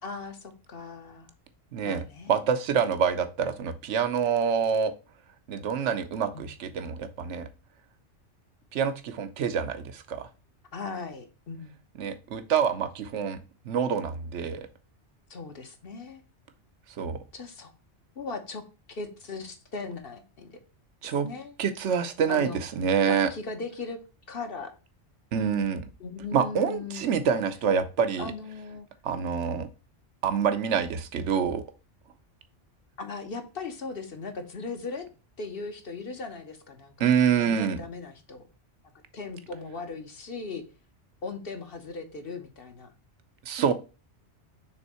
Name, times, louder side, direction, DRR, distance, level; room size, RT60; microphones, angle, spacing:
voice 1, 0.0-1.3 1.8-2.3 6.3-6.6 10.7-11.8 15.3-16.2 17.3-17.7 18.1-18.6 18.9-20.6 21.0-21.6 22.3-22.6 23.1-24.0 24.3-24.7 26.0-27.3 28.2-28.9 33.0-35.0 35.4-38.5 39.1-40.6 41.2-42.9, left 4 dB, 55° left, 5 dB, 1.2 m, -38 dB
voice 2, 1.7-2.0 2.3-4.9 5.5-7.5 8.7-10.3 12.0-13.4 13.6-14.7 17.0-17.2 21.0-21.3 21.6-23.3 25.3-25.8 26.3-28.3 29.0-29.7 30.2-31.6 37.0-37.8 43.5-43.7, right 7 dB, 75° right, 10 dB, 1.1 m, -26 dB
6.3 x 3.6 x 4.2 m, 0.31 s
omnidirectional pair, 1.2 m